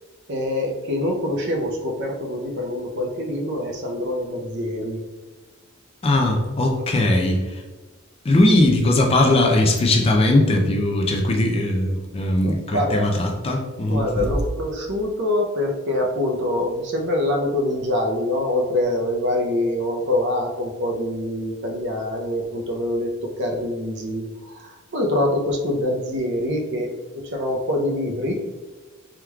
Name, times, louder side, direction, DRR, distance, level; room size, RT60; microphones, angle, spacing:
voice 1, 0.3-5.0 12.4-13.1 13.9-24.2 24.5-26.9 27.1-28.4, left 1 dB, 55° right, 1 dB, 0.6 m, -25 dB
voice 2, 6.0-7.4 8.2-14.3, left 1 dB, 30° left, 2 dB, 0.4 m, -19 dB
3.5 x 3.0 x 2.3 m, 1.2 s
head